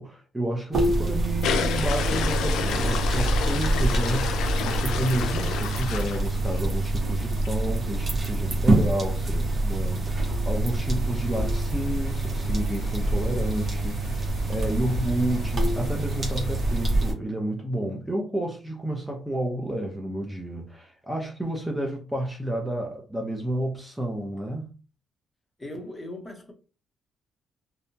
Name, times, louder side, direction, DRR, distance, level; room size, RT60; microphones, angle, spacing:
voice 1, 0.0-24.7, right 1 dB, 10° right, 0.6 m, -31 dB
sound 1, 0.7-17.1, right 2 dB, 40° right, 1.0 m, -26 dB
sound 2, 1.4-6.9 7.3-7.5 7.9-8.0 8.2-8.3 8.5-16.8, left 6 dB, 85° left, 0.3 m, -33 dB
voice 2, 25.6-26.5, left 1 dB, 15° left, 0.8 m, -38 dB
2.7 x 2.2 x 2.7 m
cardioid pair, 90°, 0 cm